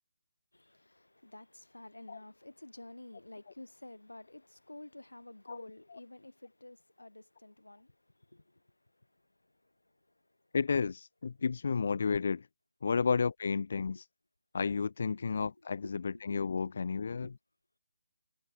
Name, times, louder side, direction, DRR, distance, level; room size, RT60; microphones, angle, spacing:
voice 1, 0.5-10.0 10.3-10.4 13.8-14.0 15.1-15.3 15.6-16.2 16.6-17.4, left 1 dB, 85° left, 3.6 m, -52 dB
voice 2, 10.5-12.5 12.8-14.0 14.5-17.3, left 5 dB, 50° left, 1.1 m, -32 dB
figure-of-eight pair, 150°, 0 cm